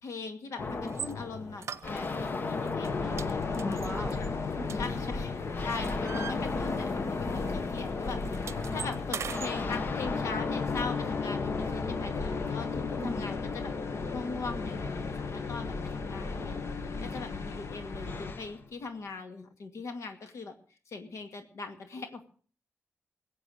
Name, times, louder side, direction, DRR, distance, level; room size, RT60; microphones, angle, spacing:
voice 1, 0.0-3.9 4.8-13.7 14.1-20.5 20.9-22.3, left 4 dB, 75° left, 6 dB, 2.2 m, -40 dB
sound 1, 0.6-18.6, left 4 dB, 40° left, 1.0 m, -35 dB
sound 2, 0.9-1.1 1.6-2.4 2.7-2.9 3.2-5.2 5.6-7.0 7.3-7.5 7.8-9.5, right 7 dB, 65° right, 0.7 m, -40 dB
sound 3, 2.8-18.3, left 3 dB, 60° left, 1.6 m, -39 dB
voice 2, 3.5-4.8 13.0-13.5 16.9-17.4, left 1 dB, 5° left, -1 dB, 2.5 m, -39 dB
21.0 x 8.4 x 6.6 m, 0.43 s
wide cardioid pair, 155°, 5 cm